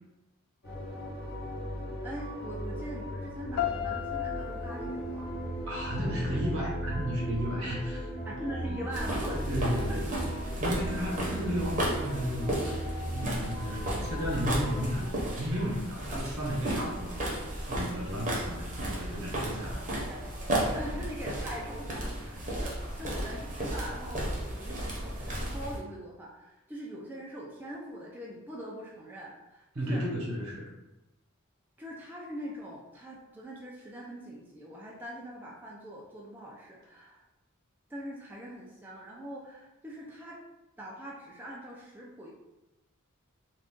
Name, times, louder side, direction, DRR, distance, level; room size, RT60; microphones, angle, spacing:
sound 1, 0.6-14.9, right 1 dB, 45° left, 0.9 m, -37 dB
voice 1, 2.0-5.3 8.2-10.0 19.6-19.7 20.1-20.4 20.7-30.0 31.8-37.2 37.9-40.4 40.8-42.3, right 1 dB, 10° right, -4 dB, 0.3 m, -42 dB
sound 2, 3.6-6.6, left 12 dB, 80° left, 0.4 m, -36 dB
voice 2, 5.7-8.1 8.6-8.7 9.5-10.2 10.6-12.6 13.0-19.8 29.7-30.6, equal, 65° right, -3 dB, 1.0 m, -33 dB
sound 3, 8.9-25.8, right 1 dB, 35° right, 0.7 m, -34 dB
2.5 x 2.2 x 3.6 m, 1.0 s
head